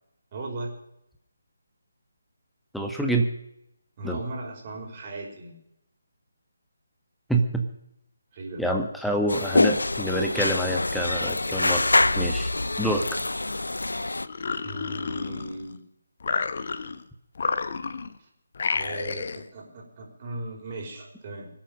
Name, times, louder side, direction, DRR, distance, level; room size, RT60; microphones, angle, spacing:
voice 1, 0.3-0.7 4.0-5.6 8.3-8.7 14.6-15.8 18.2-18.3 18.7-21.5, right 2 dB, 30° right, -1 dB, 5.6 m, -37 dB
voice 2, 2.7-3.3 4.0-4.2 7.3-7.6 8.6-11.9 12.2-12.5 12.8-13.2, right 1 dB, ahead, 2 dB, 1.3 m, -26 dB
sound 1, 9.3-14.3, left 2 dB, 80° left, 0.7 m, -25 dB
sound 2, 14.2-15.8 16.2-17.0 17.4-18.2 18.6-19.5, left 5 dB, 50° left, 1.2 m, -30 dB
25.0 x 8.7 x 6.6 m, 0.80 s
figure-of-eight pair, 155°, 0 cm